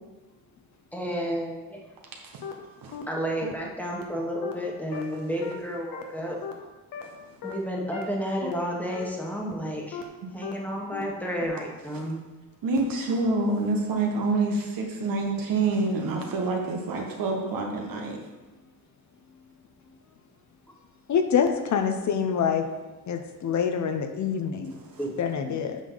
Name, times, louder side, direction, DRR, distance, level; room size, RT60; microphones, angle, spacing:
voice 1, 0.9-1.8 3.1-6.4 7.4-10.0 10.3-12.2 25.0-25.1, equal, 5° left, -2 dB, 1.4 m, -31 dB
sound 1, 2.4-2.5 2.9-3.0 3.4-3.5 3.9-4.0 4.4-4.5 4.9-5.0 5.4-5.5 5.9-6.0 6.4-6.5 6.9-7.0 7.4-7.5 7.9-8.0 8.4-8.5 8.9-9.0 9.4-9.5 9.9-10.0 10.4-10.5 10.9-11.0 11.4-11.5, left 8 dB, 75° left, 1.1 m, -36 dB
voice 2, 12.6-18.2 24.7-25.0 25.5-25.6, right 3 dB, 75° right, 1 dB, 1.6 m, -27 dB
voice 3, 21.1-22.7 23.1-24.7 25.2-25.8, left 7 dB, 55° left, 6 dB, 0.8 m, -26 dB
8.3 x 5.7 x 4.0 m, 1.1 s
cardioid pair, 125°, 34 cm